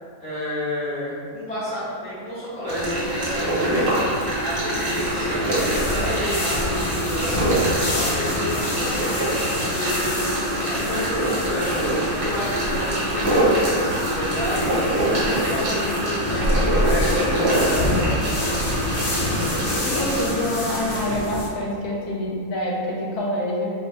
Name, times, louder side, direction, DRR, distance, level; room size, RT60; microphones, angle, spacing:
voice 1, 0.2-3.9 4.4-7.5 7.9-10.3 10.7-11.8 12.1-14.7 15.2-18.6, left 1 dB, 5° left, -15 dB, 0.9 m, -31 dB
sound 1, 2.7-20.2, right 1 dB, 45° right, 1.0 m, -24 dB
sound 2, 2.8-21.5, left 1 dB, 60° left, 0.8 m, -29 dB
sound 3, 5.0-21.3, equal, 75° right, 1.0 m, -31 dB
voice 2, 19.8-23.7, left 1 dB, 80° left, -3 dB, 1.2 m, -26 dB
2.8 x 2.5 x 3.2 m, 2.2 s
omnidirectional pair, 1.6 m